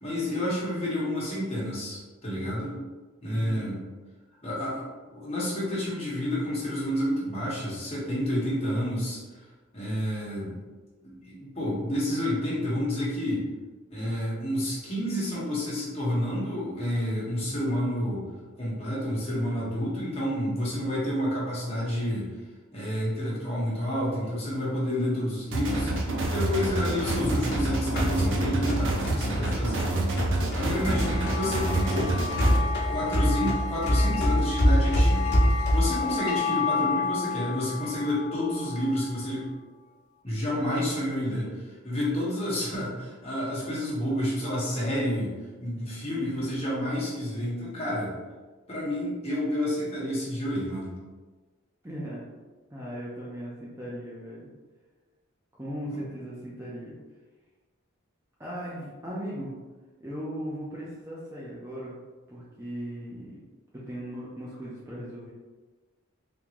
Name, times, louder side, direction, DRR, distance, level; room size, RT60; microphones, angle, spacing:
voice 1, 0.0-2.8 3.2-3.8 4.4-4.9 5.1-9.2 9.7-10.6 11.0-13.4 13.9-18.2 18.5-22.3 22.7-29.9 30.5-32.1 32.9-39.5 40.2-45.3 45.6-48.1 48.7-50.9, left 1 dB, 30° left, -7 dB, 1.2 m, -29 dB
voice 2, 3.2-3.7 30.5-31.0 46.1-46.6 51.8-52.2 52.7-54.5 55.5-56.9 58.4-59.5 60.0-62.0 62.3-63.4 63.9-65.3, equal, 15° right, -7 dB, 0.5 m, -38 dB
sound 1, 25.5-32.6, right 2 dB, 65° right, 0.6 m, -28 dB
sound 2, 27.1-31.4 31.7-36.0, equal, 55° left, 0.9 m, -25 dB
sound 3, 30.7-39.3, left 5 dB, 70° left, 0.4 m, -32 dB
3.6 x 2.7 x 3.0 m, 1.3 s
head